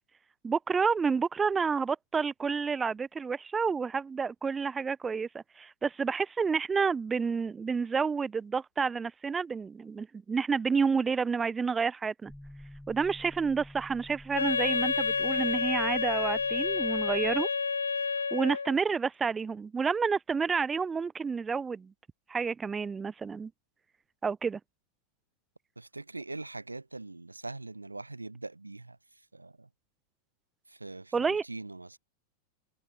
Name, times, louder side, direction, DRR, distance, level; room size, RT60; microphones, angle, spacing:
voice 1, 0.4-12.3 12.9-17.5 18.3-21.9 22.3-23.5 24.2-24.6 31.1-31.4, right 5 dB, 15° right, 0.7 m, -29 dB
sound 1, 12.3-17.4, left 1 dB, 5° left, 3.6 m, -51 dB
Wind instrument woodwind instrument, 14.3-18.8, left 5 dB, 75° left, 1.0 m, -29 dB
voice 2, 25.8-29.0 29.3-29.7 30.7-32.0, right 2 dB, 80° right, 1.0 m, -42 dB
figure-of-eight pair, 90°, 0 cm